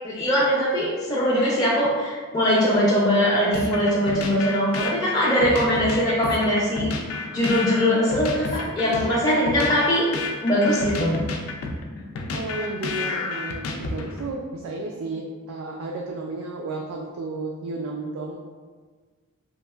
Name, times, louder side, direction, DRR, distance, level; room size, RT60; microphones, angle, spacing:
voice 1, 0.0-6.9 7.3-10.1 10.4-11.2, equal, 15° left, -8 dB, 0.4 m, -21 dB
sound 1, 3.5-14.3, left 3 dB, 85° left, 0.4 m, -31 dB
voice 2, 10.7-11.1 12.3-18.4, right 3 dB, 85° right, -1 dB, 0.3 m, -33 dB
2.8 x 2.4 x 2.3 m, 1.5 s
head